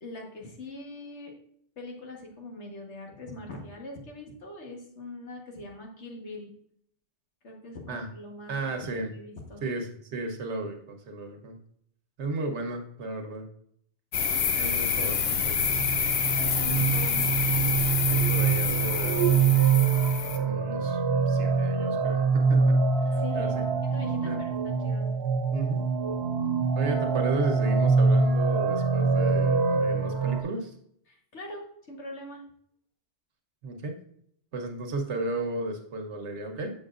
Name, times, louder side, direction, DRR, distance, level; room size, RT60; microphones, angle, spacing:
voice 1, 0.0-1.3 1.8-6.5 7.4-9.6 16.4-17.3 23.1-25.1 31.1-32.4, left 2 dB, 80° left, 1 dB, 1.6 m, -42 dB
voice 2, 8.5-9.1 9.6-11.6 12.2-13.5 14.5-15.6 16.7-16.8 17.9-19.5 20.2-21.0 21.3-22.8 23.1-23.7 24.2-24.4 25.5-25.8 26.7-30.7 33.6-34.0 34.5-36.7, right 2 dB, 85° right, 4 dB, 1.3 m, -34 dB
sound 1, 14.1-20.4, left 7 dB, 65° left, 0.9 m, -27 dB
sound 2, 15.7-30.4, right 5 dB, 65° right, 1.2 m, -25 dB
7.0 x 6.5 x 2.5 m, 0.67 s
omnidirectional pair, 1.1 m